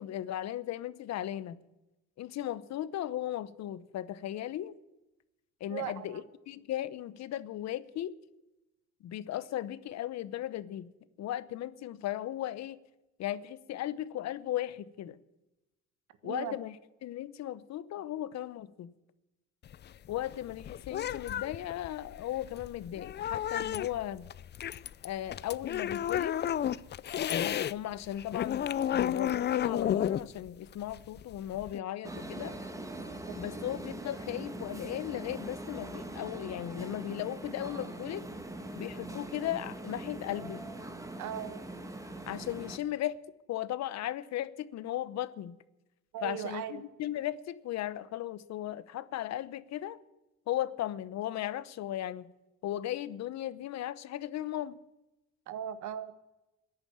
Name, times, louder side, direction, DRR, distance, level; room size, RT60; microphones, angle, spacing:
voice 1, 0.0-1.6 2.2-4.8 5.6-8.2 9.0-10.9 11.2-12.8 13.2-15.2 16.2-16.7 17.0-18.9 20.1-24.3 25.0-26.4 27.7-32.6 33.4-38.2 38.7-40.6 42.3-43.2 43.5-45.6 46.2-50.0 50.5-52.3 52.6-54.8, left 12 dB, 65° left, 1.0 m, -36 dB
voice 2, 5.7-6.2 16.2-16.5 33.2-33.4 41.2-41.6 46.1-46.8 55.5-56.1, right 9 dB, 85° right, 1.6 m, -38 dB
sound 1, 19.6-27.7 28.1-31.8, left 10 dB, 35° left, 0.5 m, -32 dB
sound 2, 32.0-42.8, right 2 dB, 10° right, 1.7 m, -42 dB
14.0 x 11.0 x 8.7 m
cardioid pair, 135°, 29 cm